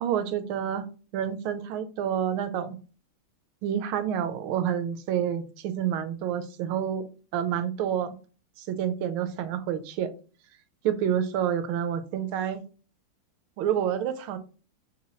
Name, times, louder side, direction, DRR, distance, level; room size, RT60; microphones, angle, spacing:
voice 1, 0.0-0.9 1.1-2.8 3.6-7.1 7.3-8.1 8.6-10.1 10.8-12.6 13.6-14.4, right 9 dB, 80° right, 10 dB, 1.5 m, -28 dB
5.4 x 2.9 x 2.9 m, 0.37 s
omnidirectional pair, 2.3 m